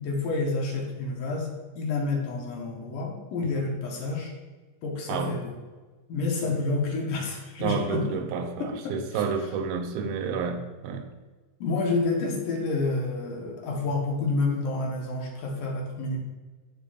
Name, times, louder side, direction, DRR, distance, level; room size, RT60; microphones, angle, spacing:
voice 1, 0.0-1.5 1.8-4.3 4.8-5.6 6.1-8.0 8.6-9.2 11.6-16.2, left 3 dB, 70° left, -1 dB, 2.6 m, -29 dB
voice 2, 5.1-5.4 6.5-6.6 7.6-11.1, right 5 dB, 85° right, 7 dB, 2.5 m, -30 dB
13.5 x 4.5 x 2.5 m, 1.3 s
omnidirectional pair, 4.2 m